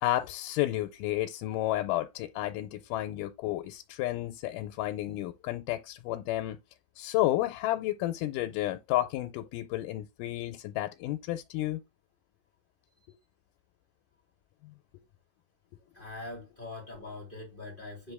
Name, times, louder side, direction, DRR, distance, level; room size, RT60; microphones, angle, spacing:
voice 1, 0.0-6.6 7.0-11.8, left 15 dB, 90° left, 2.2 m, -31 dB
voice 2, 15.9-18.1, left 2 dB, 20° left, 1.9 m, -42 dB
7.6 x 3.6 x 3.4 m
omnidirectional pair, 3.7 m